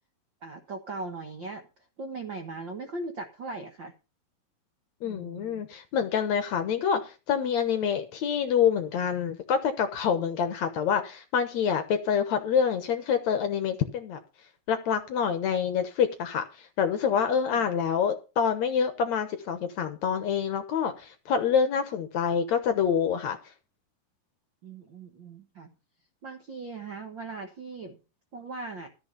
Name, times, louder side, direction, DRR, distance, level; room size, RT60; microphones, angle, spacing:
voice 1, 0.4-1.7 2.0-3.9 5.0-5.6 17.1-17.6 24.6-25.7 26.2-28.0 28.3-28.9, right 3 dB, 60° right, 4 dB, 1.2 m, -39 dB
voice 2, 5.0-14.2 14.7-23.4, left 7 dB, 65° left, 8 dB, 1.9 m, -26 dB
13.5 x 6.3 x 6.7 m, 0.32 s
omnidirectional pair, 4.2 m